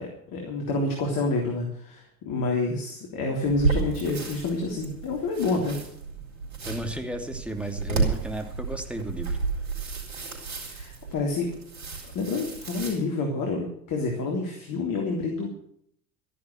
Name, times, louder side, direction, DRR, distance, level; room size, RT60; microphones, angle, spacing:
voice 1, 0.0-5.8 10.7-11.5 12.1-15.5, left 3 dB, 55° left, 1 dB, 3.4 m, -28 dB
sound 1, 3.4-12.9, right 4 dB, 85° right, 4.1 m, -32 dB
voice 2, 6.7-9.4, right 1 dB, 5° right, 4 dB, 2.7 m, -33 dB
13.5 x 11.0 x 6.5 m, 0.68 s
hypercardioid pair, 65°, 40 cm